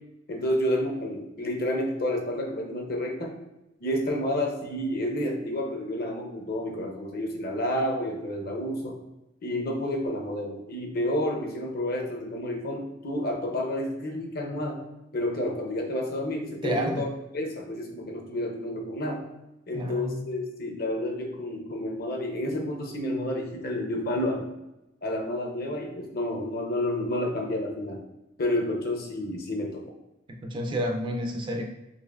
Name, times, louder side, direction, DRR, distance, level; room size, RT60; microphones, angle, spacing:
voice 1, 0.3-3.3 3.8-8.9 9.4-14.8 15.1-17.1 17.3-19.2 19.7-24.5 25.0-28.0 28.4-29.8, left 1 dB, 55° left, 1 dB, 0.7 m, -30 dB
voice 2, 16.6-17.1 19.7-20.3 30.3-31.6, equal, 25° right, 3 dB, 0.4 m, -30 dB
4.1 x 2.9 x 2.4 m, 0.95 s
head